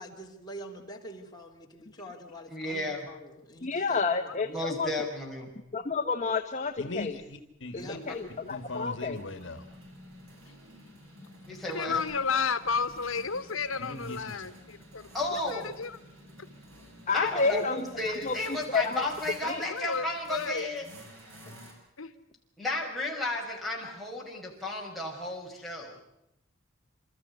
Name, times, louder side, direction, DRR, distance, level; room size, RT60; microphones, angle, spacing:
voice 1, 0.0-4.7 7.8-8.0, equal, 20° left, 0 dB, 3.4 m, -45 dB
voice 2, 2.5-3.1 4.4-5.5 8.1-8.2 11.4-12.0 15.1-15.7 17.1-20.9 22.6-26.0, left 1 dB, ahead, -3 dB, 5.8 m, -33 dB
voice 3, 3.6-4.9 5.7-7.2 7.7-9.2 17.1-18.4 18.7-19.1 19.5-19.6, left 4 dB, 35° left, 5 dB, 1.1 m, -30 dB
voice 4, 6.8-8.0 8.5-9.6 13.8-14.4, left 2 dB, 65° left, 9 dB, 1.9 m, -39 dB
sound 1, 6.8-21.7, equal, 90° right, 6.7 m, -51 dB
voice 5, 11.7-15.0 15.3-16.0 19.7-20.7 22.0-22.1, left 5 dB, 85° left, 11 dB, 1.2 m, -32 dB
28.0 x 14.0 x 9.6 m, 0.82 s
head